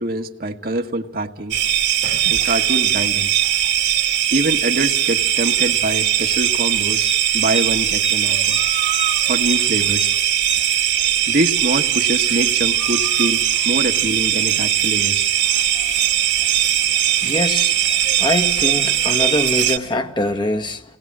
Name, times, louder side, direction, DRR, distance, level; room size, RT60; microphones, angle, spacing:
voice 1, 0.0-1.6 2.2-3.3 4.3-8.6 9.3-10.1 11.3-15.3, right 1 dB, 55° right, 1.7 m, -24 dB
sound 1, 1.5-19.8, right 10 dB, 75° right, 2.4 m, -19 dB
voice 2, 17.2-17.8 18.2-20.8, left 1 dB, 25° left, 1.6 m, -23 dB
28.5 x 19.5 x 7.5 m
head